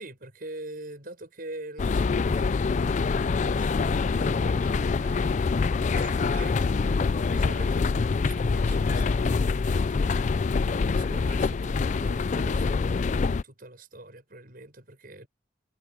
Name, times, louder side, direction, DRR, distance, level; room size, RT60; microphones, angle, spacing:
voice 1, 0.0-2.9 3.4-5.2 6.0-7.0 7.3-10.3 10.9-15.3, right 2 dB, 50° right, 6.2 m, -44 dB
sound 1, 1.8-13.4, left 4 dB, 40° left, 0.3 m, -25 dB
head